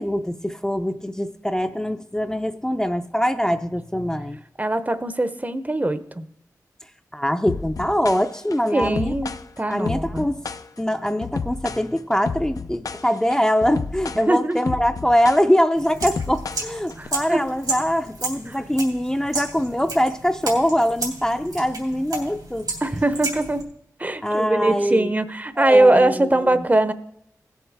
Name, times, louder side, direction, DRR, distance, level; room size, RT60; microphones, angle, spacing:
voice 1, 0.0-4.4 7.1-9.1 9.7-10.4 10.8-22.7 24.2-25.1 25.6-26.7, equal, 10° left, 7 dB, 0.6 m, -23 dB
voice 2, 4.6-6.2 8.7-9.3 9.6-10.3 14.3-14.6 17.0-17.4 18.5-18.6 22.8-23.7 24.0-26.9, right 2 dB, 25° right, 12 dB, 0.7 m, -21 dB
sound 1, 7.5-17.1, left 5 dB, 65° left, 0.5 m, -31 dB
sound 2, 15.8-23.6, right 3 dB, 85° right, 2.8 m, -32 dB
17.0 x 7.2 x 3.5 m, 0.76 s
cardioid pair, 40°, 6 cm